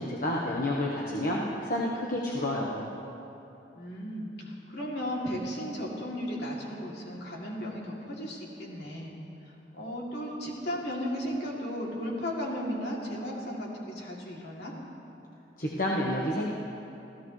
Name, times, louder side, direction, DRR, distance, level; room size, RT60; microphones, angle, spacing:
voice 1, 0.0-2.9 15.6-16.4, left 1 dB, 50° left, -3 dB, 1.3 m, -29 dB
voice 2, 3.7-9.1 9.7-14.7, equal, 65° left, -3 dB, 2.9 m, -35 dB
27.5 x 15.5 x 3.3 m, 2.9 s
head